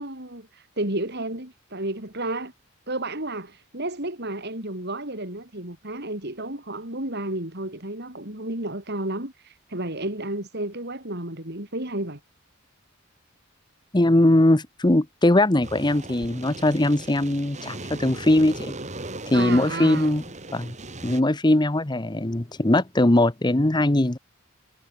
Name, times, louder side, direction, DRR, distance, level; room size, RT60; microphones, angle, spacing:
voice 1, 0.0-2.5 2.9-12.2 19.3-20.1, right 1 dB, 50° right, 5.6 m, -32 dB
voice 2, 13.9-18.7 19.3-20.2 20.5-20.7 21.0-24.2, left 1 dB, 20° left, 0.9 m, -20 dB
sound 1, 15.6-21.2, right 2 dB, 35° right, 3.0 m, -38 dB
head